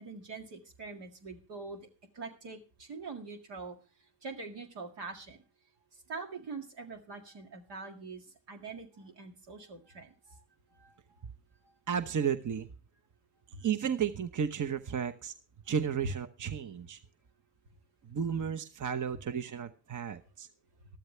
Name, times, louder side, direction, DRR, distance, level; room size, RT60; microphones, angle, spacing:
voice 1, 0.0-1.9 2.1-3.8 4.2-5.4 6.1-10.4 10.7-11.0 11.6-11.7 13.5-13.6, right 4 dB, 85° right, 3 dB, 2.0 m, -44 dB
voice 2, 11.9-12.7 13.6-15.3 15.7-17.0 18.0-20.5, right 7 dB, 50° right, 8 dB, 1.0 m, -33 dB
13.5 x 13.0 x 3.3 m, 0.35 s
supercardioid pair, 50°, 40 cm